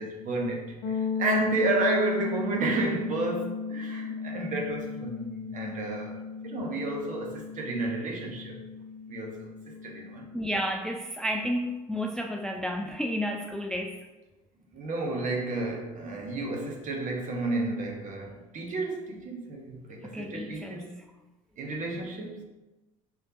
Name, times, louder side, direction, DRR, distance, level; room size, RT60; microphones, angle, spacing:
voice 1, 0.0-6.2 6.4-8.6 9.1-10.3 14.7-21.0 21.6-22.4, right 2 dB, 40° right, 1 dB, 1.1 m, -31 dB
sound 1, 0.8-10.5, left 5 dB, 60° left, 0.6 m, -35 dB
voice 2, 10.3-14.0 20.0-20.9, equal, 5° left, 2 dB, 0.3 m, -31 dB
5.4 x 3.3 x 2.9 m, 1.1 s
figure-of-eight pair, 60°, 19 cm